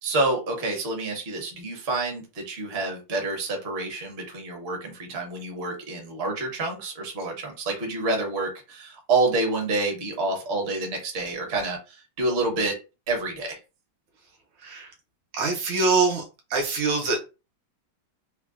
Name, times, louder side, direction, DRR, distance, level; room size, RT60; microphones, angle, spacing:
voice 1, 0.0-12.8 13.1-13.6, right 2 dB, 45° right, 2 dB, 0.8 m, -28 dB
voice 2, 15.3-16.2 16.5-17.2, right 3 dB, 75° right, 2 dB, 1.5 m, -24 dB
3.6 x 2.1 x 2.4 m, 0.30 s
omnidirectional pair, 2.3 m